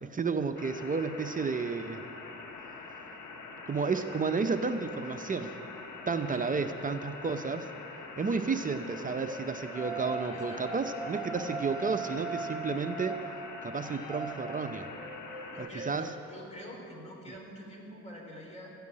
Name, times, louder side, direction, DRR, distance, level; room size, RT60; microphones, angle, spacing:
voice 1, 0.0-2.0 3.7-5.5 6.1-7.7 8.2-13.2 13.6-14.9 15.6-16.1, right 4 dB, 25° right, 8 dB, 0.6 m, -32 dB
sound 1, 0.6-15.7, left 4 dB, 70° left, 1.5 m, -45 dB
sound 2, 5.4-6.9 8.1-17.2, right 3 dB, 5° right, 1.4 m, -41 dB
voice 2, 10.3-10.8 15.5-18.7, equal, 20° left, -2 dB, 3.7 m, -46 dB
14.5 x 5.8 x 9.7 m, 2.7 s
cardioid pair, 90°, 30 cm